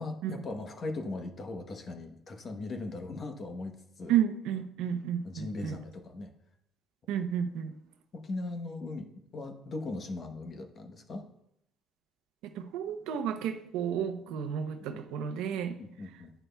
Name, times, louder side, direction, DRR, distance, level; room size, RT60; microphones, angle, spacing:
voice 1, 0.0-4.1 5.2-6.3 8.1-11.3 14.8-15.0 15.8-16.3, left 2 dB, 35° left, 1.0 m, -39 dB
voice 2, 4.1-5.7 7.1-7.7 12.6-15.8, right 9 dB, 90° right, 0.7 m, -31 dB
10.5 x 9.1 x 2.3 m
cardioid pair, 140°, 0 cm